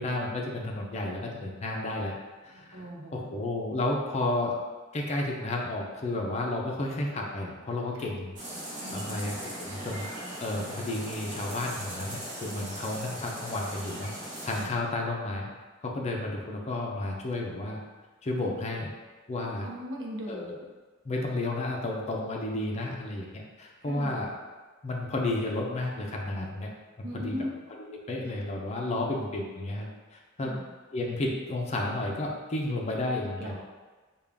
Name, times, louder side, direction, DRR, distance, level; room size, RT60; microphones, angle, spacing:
voice 1, 0.0-2.2 2.4-4.6 4.9-8.3 8.9-10.1 10.4-14.1 14.4-15.5 15.8-17.8 18.2-18.9 19.3-19.7 20.3-20.5 21.0-24.3 24.8-26.7 27.0-27.4 27.7-30.6 30.9-33.6, left 2 dB, 35° left, -1 dB, 0.5 m, -32 dB
voice 2, 2.7-3.4 8.8-9.3 14.6-14.7 19.6-20.6 23.8-24.1 27.0-27.5 30.4-30.6 33.4-33.6, equal, 65° right, -2 dB, 0.7 m, -38 dB
sound 1, 8.4-14.6, right 1 dB, 40° right, 0.9 m, -39 dB
3.6 x 2.3 x 3.4 m, 1.3 s
head